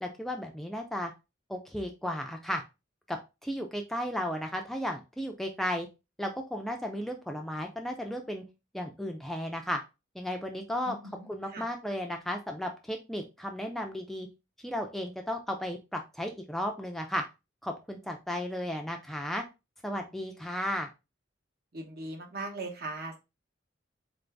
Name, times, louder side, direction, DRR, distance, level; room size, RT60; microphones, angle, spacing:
voice 1, 0.0-1.1 1.5-2.6 3.1-5.9 6.2-8.4 8.7-9.8 10.1-11.0 11.2-14.3 14.6-17.2 17.6-19.4 19.8-20.9, equal, ahead, 3 dB, 0.4 m, -34 dB
voice 2, 10.9-11.3 11.5-11.6 21.7-23.2, right 2 dB, 55° right, 2 dB, 0.9 m, -39 dB
3.7 x 2.6 x 3.3 m, 0.26 s
head